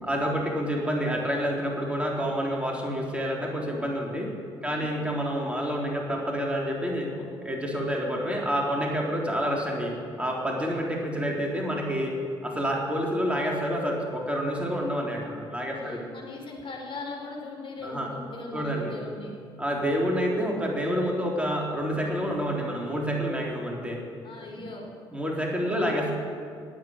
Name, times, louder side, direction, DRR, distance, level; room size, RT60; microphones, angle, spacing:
voice 1, 0.0-4.3 4.6-12.2 12.4-16.0 17.8-18.1 18.5-18.9 19.6-24.0 25.1-26.1, equal, 10° right, -1 dB, 3.8 m, -28 dB
voice 2, 15.7-19.3 24.2-24.8 25.6-26.1, left 3 dB, 40° left, -1 dB, 5.1 m, -40 dB
15.5 x 9.4 x 8.8 m, 2.2 s
hypercardioid pair, 50°, 13 cm